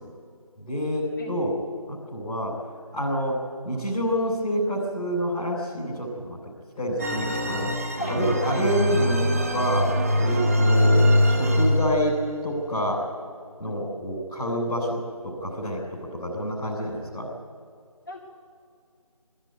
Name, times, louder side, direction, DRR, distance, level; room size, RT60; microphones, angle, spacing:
voice 1, 0.6-1.5 1.9-2.5 2.9-3.4 3.6-6.4 6.7-7.7 8.1-12.2 12.4-13.0 13.6-17.3, equal, 5° left, -9 dB, 3.3 m, -27 dB
sound 1, 7.0-12.2, left 1 dB, 25° right, 1.0 m, -22 dB
voice 2, 10.4-10.9 13.7-14.0 18.1-18.2, equal, 35° left, -4 dB, 2.3 m, -37 dB
22.0 x 13.5 x 9.4 m, 2.3 s
figure-of-eight pair, 165°, 19 cm